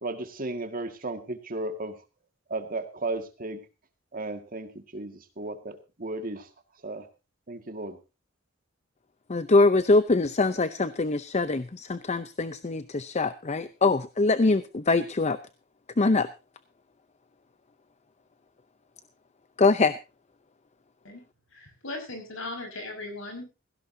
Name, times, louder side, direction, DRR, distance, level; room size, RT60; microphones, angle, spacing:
voice 1, 0.0-2.0 2.5-3.6 4.1-6.5 6.8-7.1 7.5-8.0, right 2 dB, 45° right, 7 dB, 2.0 m, -34 dB
voice 2, 9.3-15.4 16.0-16.3 19.6-19.9, left 3 dB, 35° left, 13 dB, 0.6 m, -23 dB
voice 3, 21.5-23.4, left 2 dB, 75° left, 5 dB, 5.9 m, -38 dB
17.0 x 16.0 x 2.8 m, 0.29 s
head